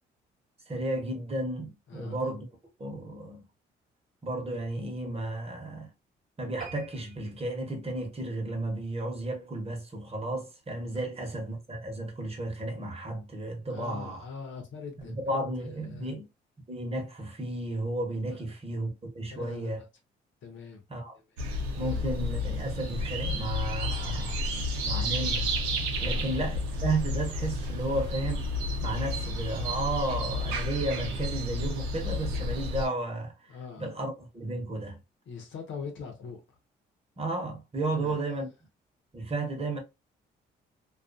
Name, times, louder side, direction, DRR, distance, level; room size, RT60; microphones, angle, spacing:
voice 1, 0.7-2.5 2.8-3.4 4.2-5.9 6.4-14.3 15.0-16.3 16.7-19.8 20.9-21.2 21.8-24.5 24.8-25.5 25.7-28.5 28.8-35.0 37.2-38.5 39.1-39.8, right 2 dB, 30° right, 1.1 m, -33 dB
sound 1, 6.6-9.4 9.8-10.0 10.5-10.6 10.9-11.0 11.2-11.3, right 4 dB, 50° right, 1.3 m, -48 dB
voice 2, 13.7-16.1 18.3-18.4 19.3-19.7 20.4-20.8 21.8-22.1 26.0-26.3 33.5-33.9 35.3-36.4 37.9-38.2, left 5 dB, 65° left, 0.9 m, -42 dB
sound 2, 21.4-32.9, left 1 dB, 90° right, 0.5 m, -31 dB
2.4 x 2.3 x 2.5 m
supercardioid pair, 55°, 21 cm